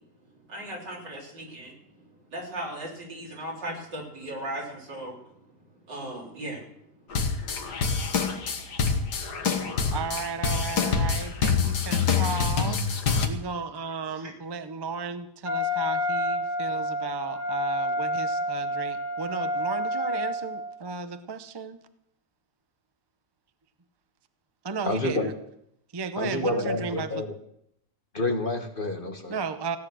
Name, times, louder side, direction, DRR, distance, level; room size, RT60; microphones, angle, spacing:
voice 1, 0.5-7.3 7.6-10.0 14.1-14.3, right 1 dB, 90° right, -2 dB, 4.5 m, -39 dB
sound 1, 7.1-13.3, left 5 dB, 70° left, 1.9 m, -26 dB
voice 2, 9.5-21.8 24.6-25.3 25.9-27.2 29.3-29.8, right 5 dB, 35° right, 10 dB, 0.4 m, -34 dB
Wind instrument woodwind instrument, 15.4-20.7, equal, 70° right, 4.0 m, -29 dB
voice 3, 24.9-25.3 26.2-27.3 28.1-29.4, left 2 dB, 35° left, 4 dB, 1.4 m, -28 dB
16.5 x 10.0 x 6.3 m, 0.75 s
omnidirectional pair, 1.8 m